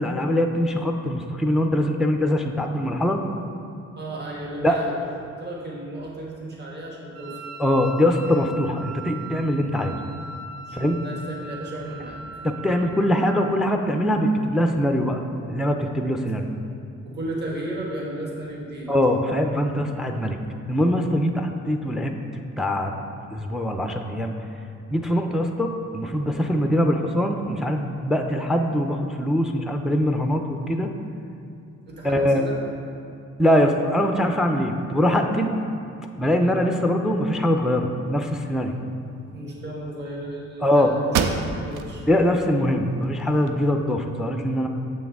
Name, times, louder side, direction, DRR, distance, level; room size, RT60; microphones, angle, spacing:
voice 1, 0.0-3.2 4.6-4.8 7.6-10.0 10.7-11.0 12.4-15.2 15.5-16.5 18.9-20.4 20.7-22.9 23.3-24.3 24.9-30.9 32.0-32.4 33.4-35.5 36.2-38.7 40.6-40.9 42.1-44.7, equal, ahead, 4 dB, 0.4 m, -22 dB
voice 2, 3.9-4.9 5.4-7.4 10.7-12.2 17.0-18.9 31.9-32.5 39.3-42.1, right 1 dB, 35° right, -3 dB, 1.5 m, -34 dB
Wind instrument woodwind instrument, 7.1-13.7, right 3 dB, 65° right, 0.9 m, -40 dB
sound 1, 40.5-40.6 41.1-41.9 42.4-42.5 43.0-43.9, right 6 dB, 85° right, 0.5 m, -27 dB
6.9 x 6.2 x 3.5 m, 2.5 s
cardioid pair, 90°, 30 cm